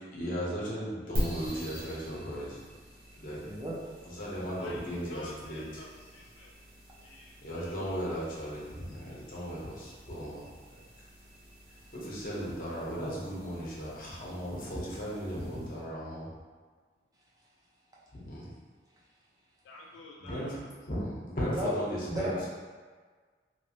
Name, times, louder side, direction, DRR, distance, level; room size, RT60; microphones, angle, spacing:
voice 1, 0.1-2.6 3.1-3.4 4.0-5.8 7.4-10.4 11.9-16.3 18.1-18.6 20.2-22.5, equal, 45° left, -7 dB, 0.8 m, -36 dB
sound 1, 1.1-15.9, equal, 55° right, 0.9 m, -43 dB
voice 2, 3.4-3.8 21.6-21.7 22.1-22.5, left 1 dB, 20° right, -5 dB, 0.4 m, -33 dB
voice 3, 5.1-6.5 7.0-7.9 19.6-20.6, left 2 dB, 80° left, -2 dB, 0.3 m, -49 dB
3.0 x 2.5 x 2.9 m, 1.5 s
head